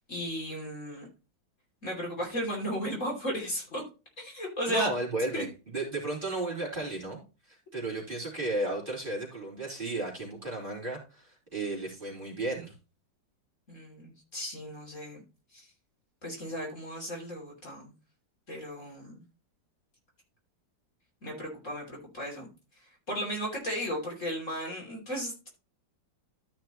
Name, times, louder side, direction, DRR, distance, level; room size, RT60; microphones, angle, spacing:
voice 1, 0.1-1.1 1.8-3.9 4.2-4.9 5.3-5.4 6.8-6.9 13.7-15.2 15.5-15.7 16.2-17.9 18.5-19.2 21.2-22.5 22.8-25.5, equal, 40° left, -1 dB, 3.3 m, -35 dB
voice 2, 4.7-12.7, right 2 dB, 25° right, -5 dB, 3.5 m, -34 dB
13.5 x 5.9 x 3.0 m, 0.31 s
omnidirectional pair, 2.0 m